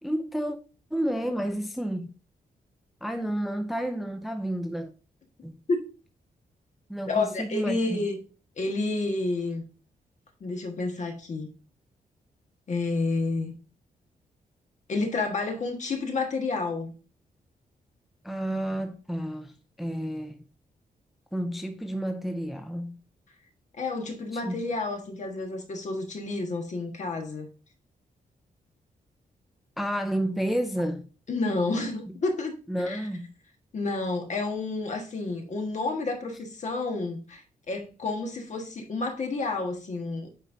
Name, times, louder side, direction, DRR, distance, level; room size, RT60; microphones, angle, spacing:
voice 1, 0.0-0.6 0.9-2.1 3.0-4.9 5.4-5.6 6.9-8.0 18.2-20.4 21.3-23.0 24.3-24.6 29.8-31.1 32.1-32.2 32.7-33.3, right 1 dB, ahead, 0.5 m, -31 dB
voice 2, 7.1-8.2 8.6-9.6 10.4-11.5 12.7-13.5 14.9-16.9 23.8-27.5 31.3-32.6 32.8-33.1 33.7-40.3, left 3 dB, 50° left, 1.5 m, -30 dB
9.1 x 4.3 x 2.6 m
wide cardioid pair, 140°, 15 cm